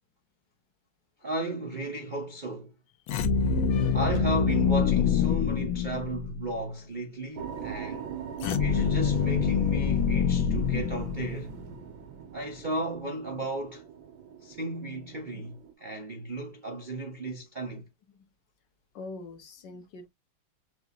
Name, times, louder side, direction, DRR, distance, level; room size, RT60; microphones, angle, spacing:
voice 1, 1.2-2.7 3.9-8.1 8.6-11.5 12.3-13.8 14.4-17.9, right 1 dB, 45° right, 0.6 m, -34 dB
sound 1, 3.1-6.4 8.4-11.7, left 6 dB, 85° left, 1.6 m, -25 dB
voice 2, 3.7-4.0 9.0-9.3 10.7-10.8 15.3-15.4 18.9-20.1, left 3 dB, 65° left, 1.5 m, -44 dB
sound 2, 7.4-15.7, right 8 dB, 75° right, 1.7 m, -42 dB
6.1 x 2.5 x 2.7 m
omnidirectional pair, 2.2 m